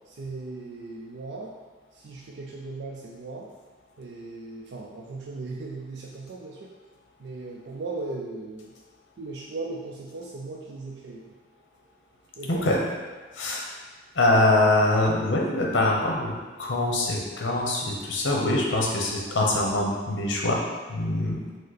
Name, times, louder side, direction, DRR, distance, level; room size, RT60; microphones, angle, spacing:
voice 1, 0.1-1.5 1.9-3.5 4.0-6.7 7.2-8.7 9.2-11.3 12.4-12.7, right 3 dB, 65° right, -3 dB, 0.4 m, -37 dB
voice 2, 12.5-12.8 13.3-13.6 14.1-20.6 20.9-21.4, left 2 dB, 75° left, -2 dB, 0.8 m, -24 dB
5.1 x 2.0 x 4.0 m, 1.4 s
head